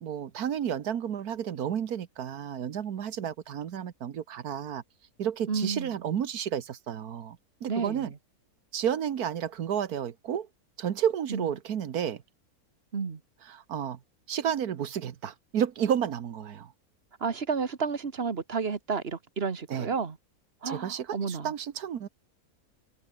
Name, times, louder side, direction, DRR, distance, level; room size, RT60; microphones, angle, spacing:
voice 1, 0.0-4.8 5.2-7.4 7.6-8.1 8.7-10.5 10.8-12.2 13.5-14.0 14.3-16.7 19.7-19.9 20.6-22.1, right 9 dB, 80° right, 1.6 m, -31 dB
voice 2, 5.5-6.0 7.7-8.2 11.3-11.5 12.9-13.2 17.2-20.2 20.6-21.5, right 5 dB, 40° right, 1.6 m, -31 dB
omnidirectional pair, 1.6 m